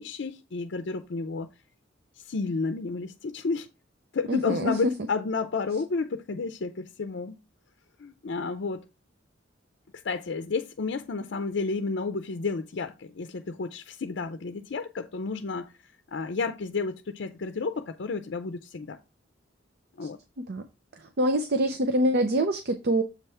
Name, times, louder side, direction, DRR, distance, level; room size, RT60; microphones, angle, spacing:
voice 1, 0.0-1.5 2.2-3.7 4.1-7.4 8.0-8.8 10.0-15.7 16.1-19.0 20.0-20.2, left 4 dB, 65° left, 0.5 m, -31 dB
voice 2, 4.3-4.7 20.0-20.1 20.5-20.6 21.0-23.0, right 1 dB, 60° right, 0.6 m, -25 dB
7.3 x 3.4 x 5.5 m
head